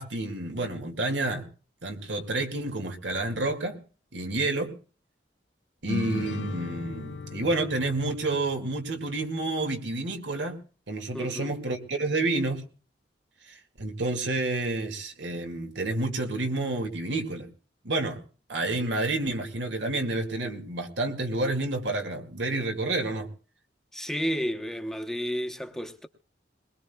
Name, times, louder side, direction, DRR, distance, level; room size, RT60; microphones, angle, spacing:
voice 1, 0.0-1.5 1.8-3.8 4.1-4.7 5.8-10.6 10.9-12.7 13.8-17.5 17.8-18.2 18.5-23.3, right 2 dB, 80° right, 2.2 m, -29 dB
sound 1, 5.9-9.5, left 3 dB, 80° left, 0.6 m, -37 dB
voice 2, 11.1-11.6 23.9-26.1, equal, 5° left, 0.9 m, -31 dB
21.5 x 21.0 x 2.3 m
head